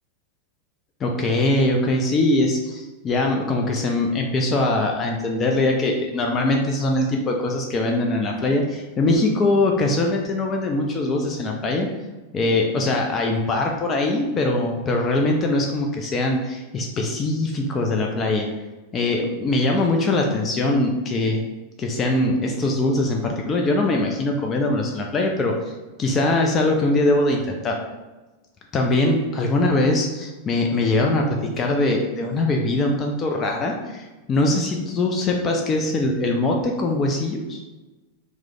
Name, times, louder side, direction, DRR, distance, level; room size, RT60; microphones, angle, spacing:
voice 1, 1.0-11.9 12.3-18.5 18.9-21.4 21.8-25.7 26.0-27.8 28.7-37.6, left 2 dB, 25° left, 1 dB, 0.3 m, -22 dB
3.1 x 2.0 x 3.6 m, 1.2 s
figure-of-eight pair, 90°, 0 cm